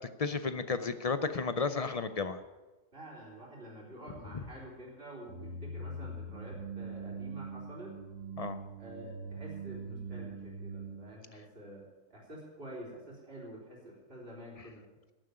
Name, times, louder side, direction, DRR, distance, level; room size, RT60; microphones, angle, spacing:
voice 1, 0.2-2.4 8.4-8.6, left 4 dB, 50° left, 11 dB, 0.4 m, -32 dB
voice 2, 2.9-8.0 8.8-11.8 12.1-14.8, right 1 dB, 45° right, -3 dB, 4.2 m, -48 dB
sound 1, 5.3-11.0, right 3 dB, 70° right, 2.1 m, -42 dB
11.5 x 7.6 x 9.8 m, 1.2 s
omnidirectional pair, 1.4 m